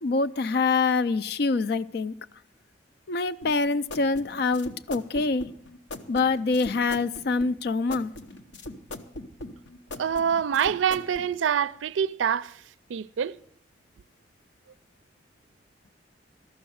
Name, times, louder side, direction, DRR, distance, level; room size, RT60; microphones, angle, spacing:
voice 1, 0.0-2.1 3.1-5.5 6.1-8.1, left 4 dB, 55° left, 0.4 m, -25 dB
sound 1, 3.4-11.3, left 2 dB, 75° left, 0.9 m, -40 dB
voice 2, 10.0-12.5 12.9-13.4, right 8 dB, 90° right, 0.4 m, -25 dB
13.5 x 6.3 x 9.1 m
head